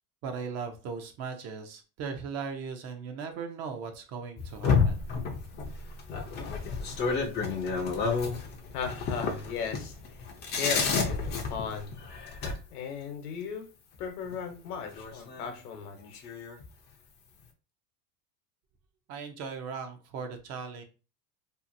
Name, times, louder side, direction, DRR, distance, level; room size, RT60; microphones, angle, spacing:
voice 1, 0.2-5.0 19.1-20.8, right 5 dB, 35° right, 6 dB, 0.5 m, -38 dB
sound 1, 4.4-12.5 14.3-14.4 14.8-15.6 16.0-16.6, left 5 dB, 25° left, 0.4 m, -30 dB
voice 2, 8.7-10.0 10.5-11.9 12.7-13.7 14.0-16.2, left 6 dB, 80° left, 5 dB, 1.0 m, -36 dB
2.7 x 2.4 x 2.5 m, 0.33 s
supercardioid pair, 120°, 44 cm